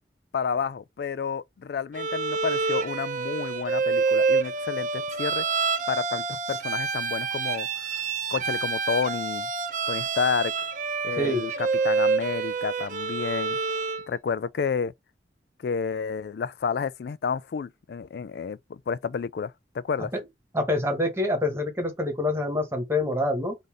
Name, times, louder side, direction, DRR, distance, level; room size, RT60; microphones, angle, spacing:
voice 1, 0.3-5.4 5.9-7.7 8.3-9.5 9.9-10.5 11.0-13.6 14.1-14.9 15.6-20.1, left 6 dB, 65° left, 0.3 m, -30 dB
Bowed string instrument, 1.9-14.1, right 4 dB, 45° right, 0.7 m, -27 dB
voice 2, 11.2-11.5 20.1-20.2 20.5-23.6, left 1 dB, 15° right, 1.3 m, -26 dB
4.0 x 2.6 x 4.8 m
head